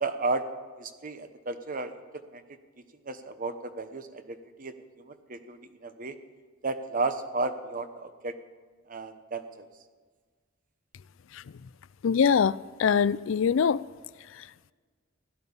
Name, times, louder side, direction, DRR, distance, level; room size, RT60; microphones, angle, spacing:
voice 1, 0.0-0.4 0.8-1.9 2.3-2.4 3.1-4.7 5.0-6.1 6.6-8.3 8.9-9.6, right 3 dB, 40° right, 1.1 m, -33 dB
voice 2, 12.0-13.8 14.4-14.5, left 6 dB, 70° left, 0.4 m, -23 dB
16.0 x 12.5 x 7.1 m
head